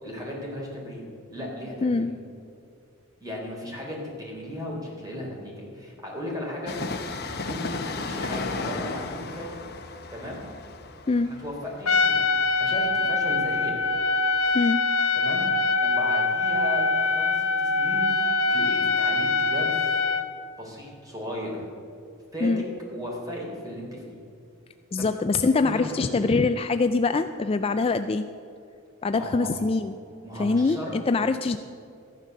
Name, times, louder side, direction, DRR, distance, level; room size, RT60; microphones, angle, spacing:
voice 1, 0.0-1.0 1.3-2.1 3.2-6.8 7.4-9.6 10.1-10.4 11.2-12.3 12.6-13.8 15.2-15.4 15.8-20.0 20.6-21.6 22.3-22.6 22.9-24.0 25.0-25.1 25.5-26.3 29.1-29.5 30.2-30.9, left 1 dB, 15° right, -3 dB, 4.0 m, -36 dB
voice 2, 1.8-2.1 11.1-11.3 14.5-14.8 22.4-22.6 24.9-28.3 29.0-29.9 30.4-31.6, left 3 dB, 25° left, 9 dB, 0.3 m, -24 dB
Train, 6.6-14.1 14.3-14.4, left 3 dB, 50° left, 1.1 m, -35 dB
Trumpet, 11.8-20.3, left 3 dB, 80° left, 1.1 m, -23 dB
14.5 x 10.5 x 6.7 m, 2.4 s
head